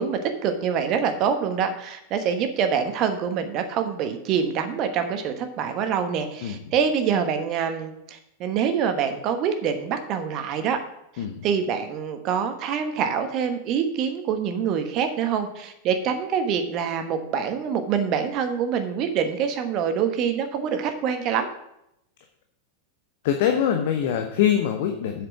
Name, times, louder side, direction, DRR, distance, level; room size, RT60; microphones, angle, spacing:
voice 1, 0.0-10.8 11.1-21.5, right 7 dB, 40° right, 7 dB, 1.3 m, -25 dB
voice 2, 23.2-25.3, left 9 dB, 50° left, 4 dB, 0.9 m, -23 dB
7.9 x 6.7 x 6.3 m, 0.80 s
figure-of-eight pair, 90°, 0 cm